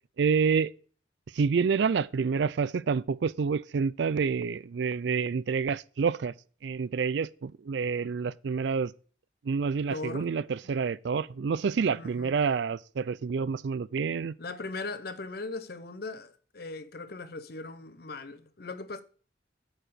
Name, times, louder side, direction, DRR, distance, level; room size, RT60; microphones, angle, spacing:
voice 1, 0.2-0.7 1.3-6.3 6.6-8.9 9.4-14.3, right 5 dB, 65° right, 0.4 m, -28 dB
voice 2, 9.9-10.3 11.9-12.4 14.4-19.0, left 3 dB, 50° left, 0.7 m, -39 dB
8.8 x 4.7 x 6.6 m
head